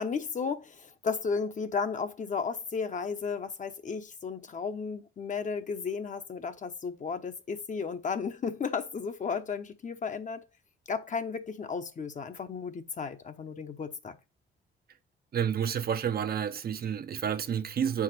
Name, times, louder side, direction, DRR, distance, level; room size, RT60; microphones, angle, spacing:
voice 1, 0.0-10.4 10.9-14.1, left 5 dB, 40° left, 0.9 m, -34 dB
voice 2, 15.3-18.0, right 8 dB, 50° right, 0.7 m, -30 dB
7.2 x 4.9 x 4.2 m
cardioid pair, 90°, 20 cm